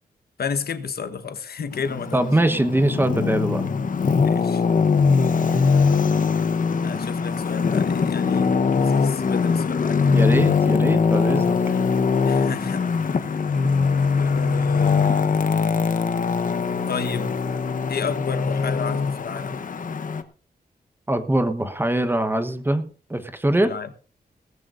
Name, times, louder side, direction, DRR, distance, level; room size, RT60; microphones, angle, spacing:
voice 1, 0.4-2.3 4.2-4.6 6.8-10.3 12.2-13.5 14.2-15.4 16.9-17.4 17.9-19.7 23.6-23.9, left 6 dB, 75° left, 1.3 m, -32 dB
Traffic noise roadway noise, 1.7-20.2, left 5 dB, 55° left, 1.0 m, -21 dB
voice 2, 2.1-3.6 10.1-11.8 21.1-23.7, right 1 dB, 15° right, 1.1 m, -22 dB
18.5 x 14.5 x 2.6 m
wide cardioid pair, 150°, 16 cm